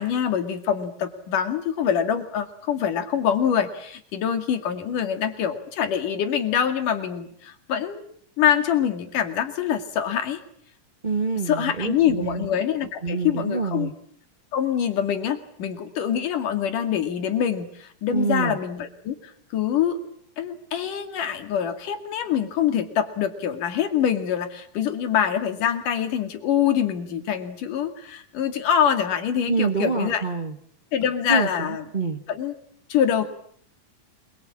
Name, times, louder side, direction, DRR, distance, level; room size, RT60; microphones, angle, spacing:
voice 1, 0.0-8.0 8.4-10.4 11.5-13.9 14.5-20.0 20.4-30.2 30.9-31.8 32.3-32.5 32.9-33.2, left 9 dB, 85° left, 8 dB, 3.9 m, -25 dB
voice 2, 11.0-12.4 13.0-13.9 18.1-18.6 29.5-30.6 31.3-32.2, right 4 dB, 40° right, 6 dB, 0.6 m, -26 dB
27.5 x 22.5 x 8.8 m, 0.62 s
omnidirectional pair, 3.6 m